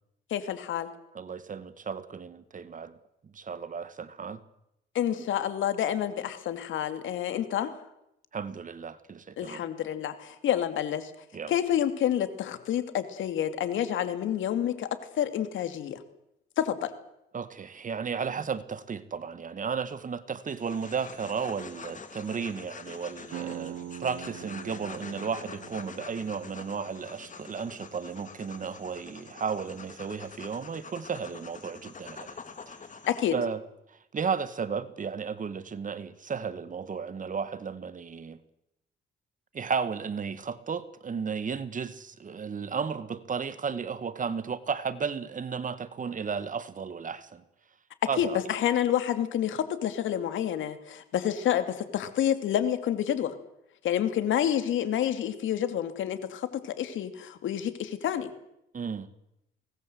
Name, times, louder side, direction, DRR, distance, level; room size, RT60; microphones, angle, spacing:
voice 1, 0.3-0.9 4.9-7.7 9.4-11.1 11.5-14.9 15.2-16.0 16.6-16.9 33.1-33.3 48.2-53.3 53.8-58.3, left 10 dB, 80° left, 2.7 m, -28 dB
voice 2, 1.1-3.0 3.3-4.4 8.3-9.6 11.3-11.5 17.3-32.4 32.7-32.8 33.3-33.6 33.9-38.4 39.5-47.4 48.1-48.4 58.7-59.1, right 6 dB, 40° right, 1.9 m, -34 dB
sound 1, 20.5-33.3, left 5 dB, 40° left, 3.2 m, -46 dB
sound 2, 23.3-28.7, right 11 dB, 85° right, 1.5 m, -44 dB
24.0 x 19.0 x 8.0 m
cardioid pair, 90°, 20 cm